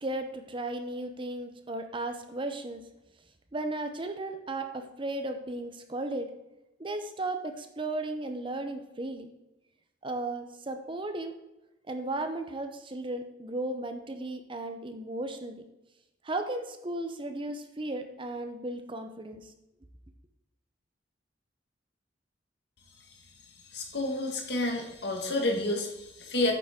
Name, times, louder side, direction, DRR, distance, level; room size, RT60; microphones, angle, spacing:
voice 1, 0.0-2.8 3.5-6.3 6.8-9.3 10.0-11.4 11.9-15.6 16.2-19.5, right 2 dB, 25° right, 6 dB, 0.7 m, -35 dB
voice 2, 23.7-26.5, left 2 dB, 60° left, 2 dB, 1.8 m, -30 dB
9.0 x 7.0 x 3.6 m, 0.93 s
head